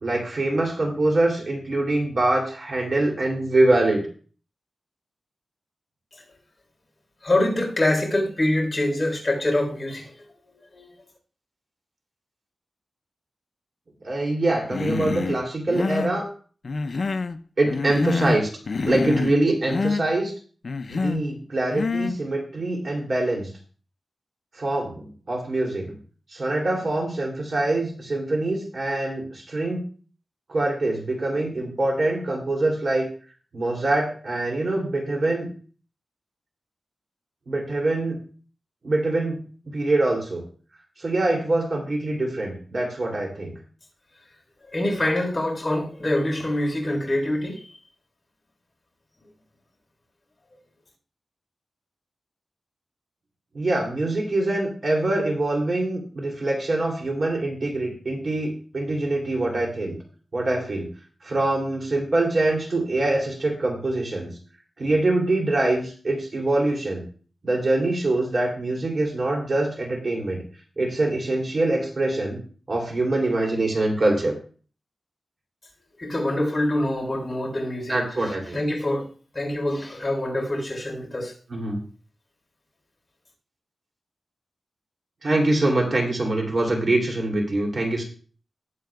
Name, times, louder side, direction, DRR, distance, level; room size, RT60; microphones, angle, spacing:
voice 1, 0.0-4.1 14.0-16.3 17.6-18.5 18.8-20.3 20.9-23.5 24.6-26.0 26.3-29.8 30.5-33.1 33.5-35.5 37.5-38.2 38.8-39.4 39.7-40.4 41.0-43.5 53.5-60.0 60.3-60.9 61.2-64.3 64.8-67.0 67.4-70.4 70.8-72.4 72.7-74.3 77.9-78.6 81.5-81.8 85.2-88.0, right 2 dB, 45° right, 2.9 m, -24 dB
voice 2, 7.2-10.1 10.5-10.9 44.7-47.7 76.0-78.0 78.2-79.1 79.3-81.3, left 1 dB, 25° left, 3.8 m, -25 dB
Human voice, 14.7-15.4 15.7-16.2 16.6-17.4 17.7-18.4 18.7-19.4 19.7-20.0 20.6-21.2 21.7-22.2, left 4 dB, 50° left, 0.5 m, -26 dB
19.5 x 7.5 x 2.3 m
wide cardioid pair, 150°, 0 cm